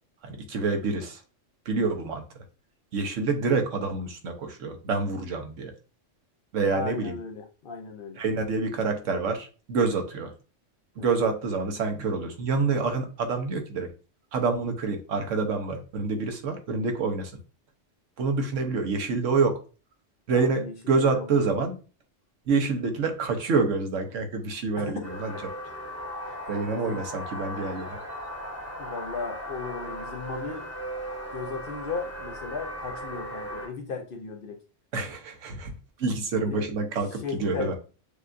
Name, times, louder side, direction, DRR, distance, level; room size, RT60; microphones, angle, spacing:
voice 1, 0.2-1.2 1.7-2.2 2.9-5.7 6.5-7.1 8.2-10.3 11.0-13.9 14.3-17.3 18.2-19.6 20.3-21.7 22.5-25.4 26.5-28.0 34.9-37.7, right 4 dB, 75° right, 5 dB, 1.2 m, -27 dB
voice 2, 6.6-8.2 11.0-11.1 20.3-21.3 24.8-24.9 26.8-27.1 28.8-30.7 31.3-34.6 36.5-36.7 37.1-37.7, left 4 dB, 55° left, 3 dB, 0.7 m, -36 dB
sound 1, 25.0-33.7, equal, 15° left, 0.9 m, -37 dB
6.6 x 2.4 x 2.5 m, 0.35 s
omnidirectional pair, 1.3 m